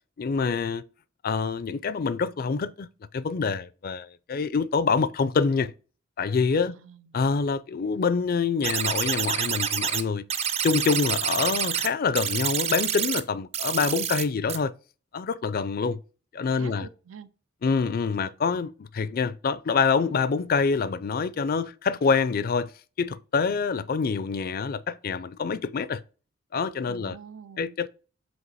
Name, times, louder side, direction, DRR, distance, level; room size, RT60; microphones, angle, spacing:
voice 1, 0.2-0.8 1.2-2.9 3.1-5.7 6.2-6.8 7.1-10.2 10.6-14.7 15.1-16.0 16.3-16.9 17.6-22.7 23.0-26.0 26.5-27.2 27.6-27.9, left 5 dB, 50° left, 0.4 m, -26 dB
voice 2, 6.6-7.2 16.5-17.3 26.9-27.8, right 6 dB, 80° right, 0.6 m, -45 dB
sound 1, 8.6-10.0 10.3-11.9 12.2-13.2 13.5-14.2 14.5-14.6, right 8 dB, 30° right, 0.5 m, -27 dB
7.8 x 2.9 x 4.1 m
head